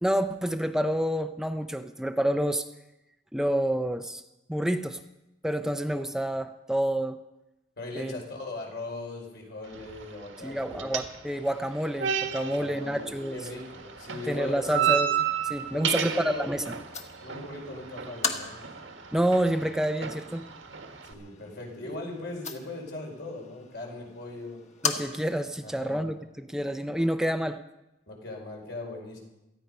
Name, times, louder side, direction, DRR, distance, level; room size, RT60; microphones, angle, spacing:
voice 1, 0.0-2.7 3.3-4.2 4.5-5.0 5.4-7.2 7.9-8.1 10.4-13.4 14.3-16.1 16.4-16.7 19.1-20.5 24.8-27.6, right 1 dB, 5° right, 7 dB, 0.5 m, -28 dB
voice 2, 7.8-10.8 12.4-14.9 15.7-16.5 17.2-18.6 21.0-24.6 25.6-26.0 28.1-29.2, left 2 dB, 65° left, 0 dB, 4.9 m, -39 dB
sound 1, 9.6-21.1, right 9 dB, 85° right, 1.7 m, -33 dB
sound 2, 12.6-25.6, left 4 dB, 40° left, 1.5 m, -40 dB
18.5 x 14.0 x 5.4 m, 0.95 s
head